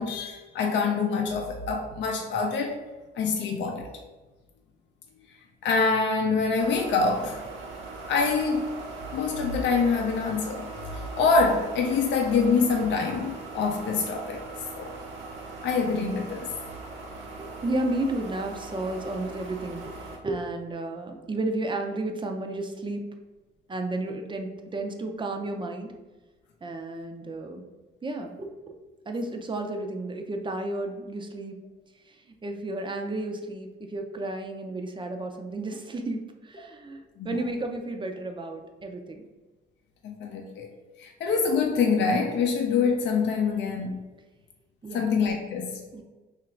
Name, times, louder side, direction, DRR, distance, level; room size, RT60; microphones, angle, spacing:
voice 1, 0.0-2.8 3.2-3.9 5.6-7.5 8.1-8.7 9.1-10.7 10.9-14.4 14.7-14.9 15.6-16.5 37.2-37.3 40.0-40.7 41.0-44.0 44.9-45.8, left 4 dB, 65° left, 2 dB, 0.5 m, -25 dB
sound 1, 6.6-20.2, right 3 dB, 80° right, 0.9 m, -40 dB
voice 2, 17.4-19.9 20.2-23.0 23.7-25.9 26.6-27.6 28.0-28.7 29.1-31.6 32.1-32.2 32.4-39.2 44.8-45.0 45.9-46.0, right 2 dB, 25° right, 4 dB, 0.5 m, -32 dB
2.9 x 2.5 x 4.3 m, 1.2 s
cardioid pair, 90°, 20 cm